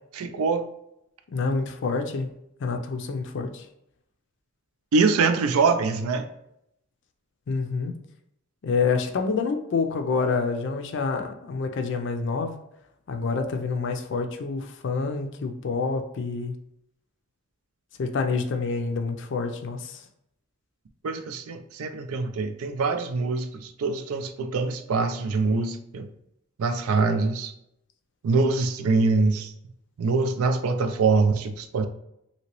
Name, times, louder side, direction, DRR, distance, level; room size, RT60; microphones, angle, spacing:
voice 1, 0.1-0.7 4.9-6.3 21.0-26.1 26.6-27.5 28.2-29.5 30.0-31.9, right 4 dB, 90° right, 8 dB, 0.4 m, -24 dB
voice 2, 1.3-2.3 2.6-3.6 7.5-7.9 8.6-12.6 13.1-16.5 18.0-20.0, left 4 dB, 55° left, 6 dB, 0.4 m, -27 dB
2.9 x 2.8 x 2.9 m, 0.79 s
head